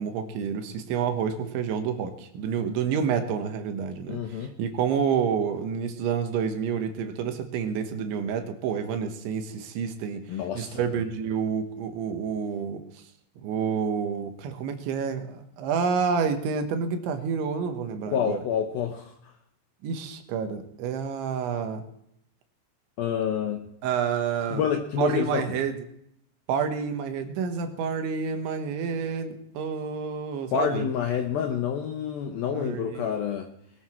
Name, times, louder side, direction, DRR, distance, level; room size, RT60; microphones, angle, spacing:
voice 1, 0.0-13.0 13.4-18.4 19.8-21.8 23.8-24.6 25.0-25.8 26.5-30.9 32.4-33.1, right 6 dB, 75° right, 6 dB, 3.5 m, -29 dB
voice 2, 4.1-4.5 10.3-10.8 18.1-19.2 23.0-23.7 24.5-25.5 30.5-33.5, left 8 dB, 80° left, 5 dB, 2.1 m, -28 dB
20.5 x 12.5 x 4.4 m, 0.74 s
omnidirectional pair, 5.5 m